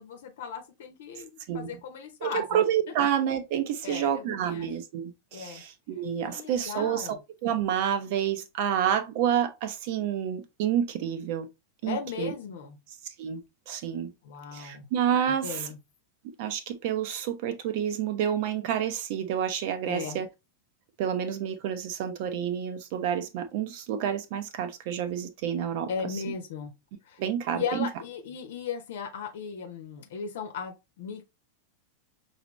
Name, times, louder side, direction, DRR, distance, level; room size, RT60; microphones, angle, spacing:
voice 1, 0.0-2.6 3.8-4.7 5.3-5.6 6.3-7.2 11.9-12.8 14.2-14.9 15.4-15.8 19.8-20.2 25.9-26.7 27.1-27.2 27.5-31.2, left 6 dB, 55° left, 0.9 m, -36 dB
voice 2, 2.2-7.2 7.4-11.5 11.8-12.3 13.2-13.4 13.7-14.1 14.5-15.7 16.4-20.3 21.0-25.9 27.2-27.6, right 9 dB, 50° right, 0.8 m, -29 dB
5.9 x 2.8 x 3.1 m
figure-of-eight pair, 90°, 0 cm